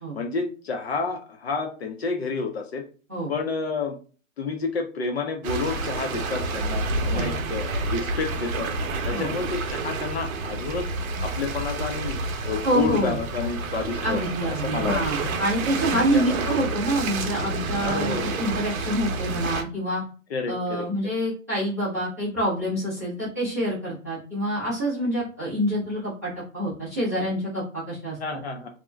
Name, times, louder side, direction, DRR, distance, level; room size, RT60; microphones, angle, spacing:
voice 1, 0.1-2.8 3.3-4.0 4.4-8.7 9.0-10.9 11.2-12.2 12.4-15.3 16.1-16.4 17.8-18.4 20.3-21.1 28.2-28.7, left 4 dB, 50° left, 5 dB, 0.5 m, -30 dB
sound 1, 5.4-19.6, right 3 dB, 75° right, 0.7 m, -29 dB
voice 2, 12.6-13.2 14.0-20.0 20.5-28.2, right 1 dB, 15° right, -12 dB, 0.4 m, -27 dB
2.4 x 2.1 x 3.2 m, 0.38 s
hypercardioid pair, 170°, 42 cm